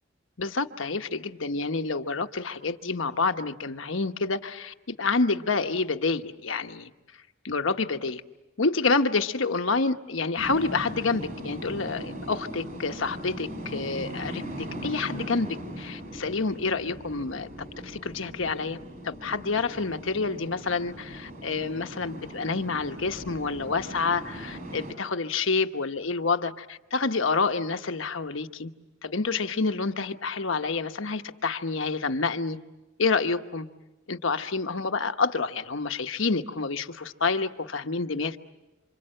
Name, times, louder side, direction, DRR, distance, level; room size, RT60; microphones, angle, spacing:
voice 1, 0.4-6.9 7.4-8.2 8.6-17.5 17.8-18.8 19.0-28.7 29.0-32.6 33.0-33.7 34.1-38.4, left 4 dB, 75° left, 7 dB, 1.2 m, -28 dB
sound 1, 10.4-24.9, equal, 45° right, 7.5 m, -39 dB
28.0 x 26.5 x 7.8 m, 1.0 s
head